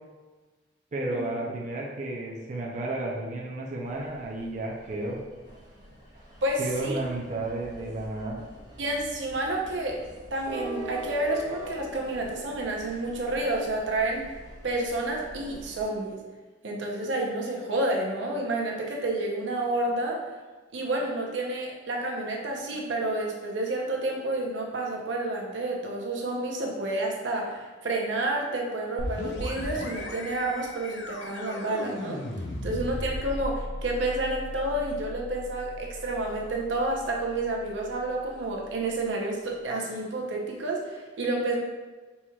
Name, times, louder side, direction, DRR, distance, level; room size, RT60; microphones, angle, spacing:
voice 1, 0.9-5.2 6.6-8.4, right 2 dB, 40° right, -2 dB, 0.5 m, -32 dB
sound 1, 3.8-15.8, equal, 20° right, 1.4 m, -43 dB
voice 2, 6.4-7.0 8.8-10.0 10.3-14.2 14.6-16.2 16.6-20.2 20.7-32.2 32.6-41.6, right 2 dB, 85° right, 0 dB, 0.7 m, -30 dB
sound 2, 29.0-38.5, left 1 dB, 70° left, 0.6 m, -37 dB
4.5 x 4.2 x 2.3 m, 1.3 s
head